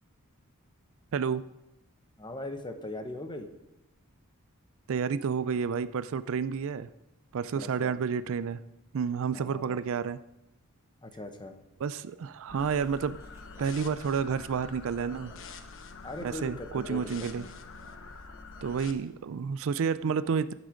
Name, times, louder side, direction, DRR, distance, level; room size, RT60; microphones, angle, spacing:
voice 1, 1.1-1.5 4.9-6.9 7.3-8.6 8.9-10.2 11.8-13.2 13.6-15.3 16.2-17.4 18.6-20.5, right 6 dB, 65° right, 15 dB, 0.4 m, -30 dB
voice 2, 2.2-3.5 7.5-8.0 9.3-9.8 11.0-11.5 16.0-17.1 17.4-17.5, left 1 dB, 20° left, 6 dB, 1.0 m, -40 dB
sound 1, 12.5-18.9, left 4 dB, 60° left, 1.0 m, -46 dB
Laughter, 12.5-18.9, equal, 15° right, 2.7 m, -58 dB
15.0 x 6.2 x 5.1 m, 0.94 s
head